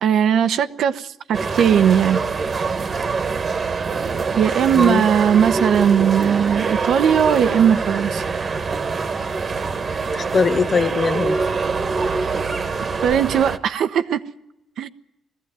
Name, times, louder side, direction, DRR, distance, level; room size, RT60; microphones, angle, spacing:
voice 1, 0.0-2.2 4.4-8.2 13.0-14.2 14.8-14.9, right 8 dB, 70° right, 0.9 m, -18 dB
sound 1, 1.3-13.6, right 4 dB, 40° right, 1.4 m, -24 dB
voice 2, 4.7-5.1 10.1-11.4, left 5 dB, 40° left, 1.0 m, -21 dB
20.0 x 15.5 x 9.0 m
cardioid pair, 90°, 0 cm